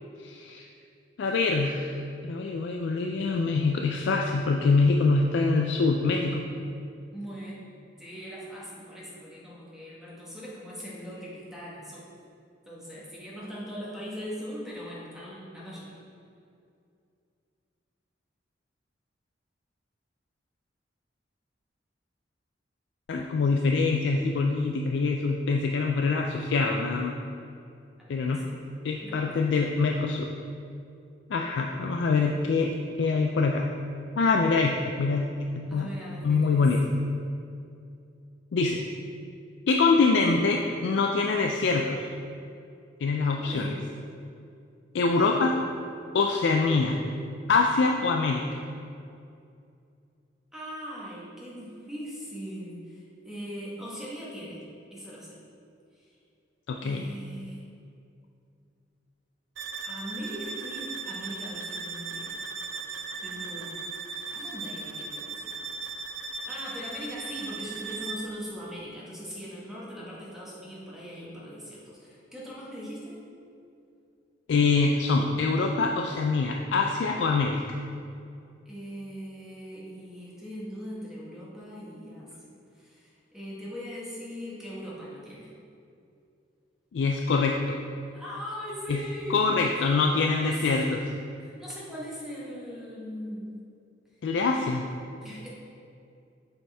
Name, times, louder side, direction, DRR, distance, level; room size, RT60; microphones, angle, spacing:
voice 1, 0.2-0.6 1.2-2.0 2.2-6.5 23.1-27.1 28.1-28.5 28.8-30.3 31.3-32.7 33.0-33.7 34.2-35.9 36.2-36.8 38.5-38.8 39.7-42.1 43.0-43.7 44.9-45.6 46.1-47.0 47.5-48.6 56.7-57.1 74.5-77.8 86.9-87.8 88.9-89.0 89.3-91.0 94.2-94.9, left 4 dB, 65° left, 2 dB, 0.3 m, -24 dB
voice 2, 7.1-7.6 8.0-12.0 12.6-16.0 28.0-29.2 35.7-36.6 43.3-43.8 50.5-54.6 54.9-55.4 55.9-56.2 56.8-57.6 59.8-62.4 62.8-63.8 64.3-65.5 65.8-65.9 66.3-73.2 78.6-85.5 88.1-89.5 89.7-89.8 90.4-90.7 91.4-93.6 95.2-95.5, equal, 5° right, -7 dB, 1.4 m, -40 dB
sound 1, 59.6-68.4, right 4 dB, 75° right, 0.4 m, -37 dB
7.7 x 4.2 x 3.4 m, 2.5 s
head